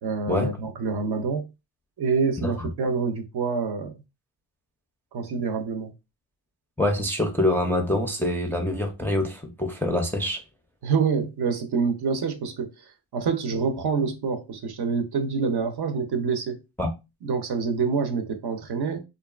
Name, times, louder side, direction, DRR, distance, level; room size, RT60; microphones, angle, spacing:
voice 1, 0.0-1.5 2.0-3.9 5.1-5.9 10.8-12.7 13.1-16.6 17.2-19.0, right 5 dB, 55° right, 0.7 m, -26 dB
voice 2, 6.8-10.4 16.8-16.9, left 1 dB, 5° left, 0.4 m, -25 dB
2.6 x 2.3 x 2.3 m
cardioid pair, 75°, 47 cm